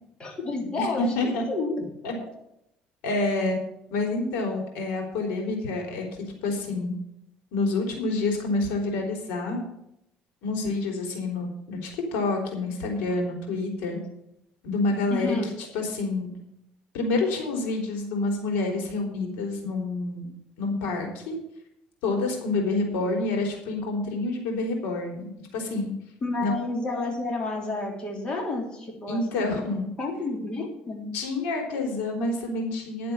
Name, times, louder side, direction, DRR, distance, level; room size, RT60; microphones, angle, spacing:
voice 1, 0.2-1.7 15.1-15.5 26.2-29.5 30.0-31.1, left 3 dB, 30° left, 0 dB, 3.4 m, -30 dB
voice 2, 0.8-1.5 2.0-2.1 3.0-3.6 3.9-6.9 7.5-9.6 10.4-14.0 14.6-15.4 15.7-16.3 16.9-20.3 20.6-21.4 22.0-25.9 26.4-26.5 29.1-29.9 31.1-33.1, left 2 dB, 85° left, 1 dB, 3.6 m, -28 dB
11.0 x 7.7 x 7.1 m, 0.80 s
cardioid pair, 115°, 3 cm